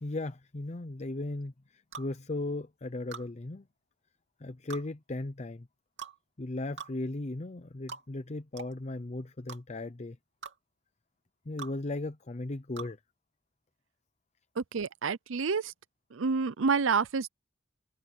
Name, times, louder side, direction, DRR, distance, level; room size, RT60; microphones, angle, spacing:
voice 1, 0.0-3.7 4.4-5.7 6.4-10.2 11.5-13.0, left 2 dB, 35° left, 0.7 m, -37 dB
sound 1, 1.9-2.1 3.1-3.3 4.7-4.9 6.0-6.2 6.8-6.9 7.9-8.0 8.6-8.7 9.5-9.6 10.4-10.6 11.6-11.7 12.8-12.9, right 5 dB, 65° right, 2.9 m, -42 dB
voice 2, 14.6-15.7 16.1-17.3, right 5 dB, 85° right, 0.6 m, -28 dB
head